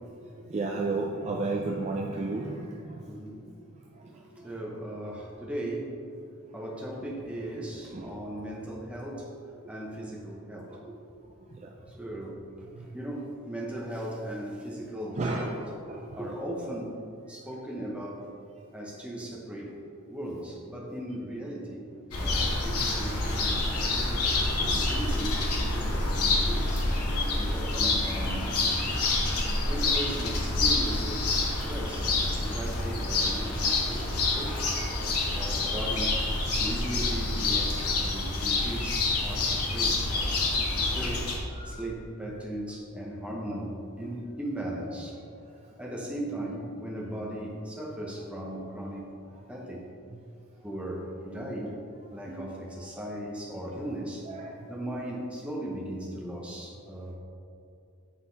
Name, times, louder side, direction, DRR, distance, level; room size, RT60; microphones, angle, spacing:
voice 1, 0.2-3.1 3.4-4.5 7.9-8.2 10.7-10.8 11.5-11.7 12.7-12.9 15.2-15.6 15.9-16.2 28.8-28.9 29.2-29.4 33.6-33.7 34.2-34.4 36.6-36.8 38.1-38.3 40.1-40.4 41.5-41.8 45.6-45.7 50.1-50.2 52.3-52.9 54.3-54.7 56.9-57.0, right 3 dB, 30° right, 0 dB, 0.3 m, -35 dB
voice 2, 3.1-3.4 4.0-6.0 6.5-9.3 9.6-10.9 11.9-12.4 12.9-17.0 17.3-18.2 18.7-19.7 20.1-24.3 24.7-27.0 27.3-29.0 29.7-32.1 32.4-34.7 35.3-36.1 36.6-40.0 40.8-41.3 41.6-45.4 45.8-49.1 49.5-49.9 50.6-51.8 52.1-54.2 54.7-57.1, right 1 dB, 5° right, -3 dB, 0.8 m, -37 dB
sound 1, 22.1-41.4, left 2 dB, 90° left, 1.1 m, -27 dB
7.6 x 4.0 x 4.0 m, 2.5 s
head